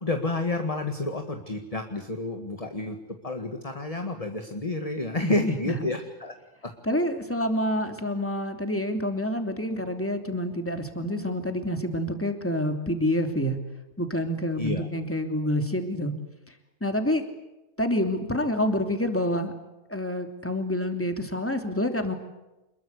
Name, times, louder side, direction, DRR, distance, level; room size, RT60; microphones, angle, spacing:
voice 1, 0.0-3.0 3.2-6.3 14.6-14.9, left 2 dB, 25° left, 5 dB, 2.0 m, -30 dB
voice 2, 5.2-5.9 6.8-13.6 14.0-16.1 16.8-17.2 17.8-19.5 19.9-22.2, left 1 dB, 10° left, 6 dB, 2.9 m, -27 dB
27.5 x 21.5 x 8.3 m, 0.98 s
omnidirectional pair, 1.5 m